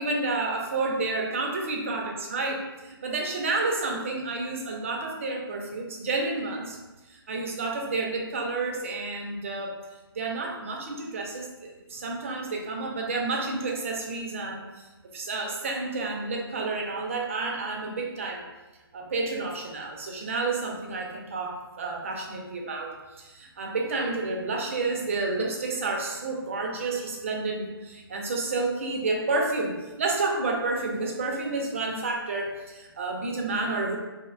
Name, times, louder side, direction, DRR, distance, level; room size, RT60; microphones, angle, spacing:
voice 1, 0.0-6.8 7.1-9.7 10.1-14.8 15.1-18.4 18.9-34.0, right 3 dB, 30° right, 1 dB, 0.4 m, -30 dB
2.5 x 2.1 x 2.4 m, 1.1 s
hypercardioid pair, 155°, 13 cm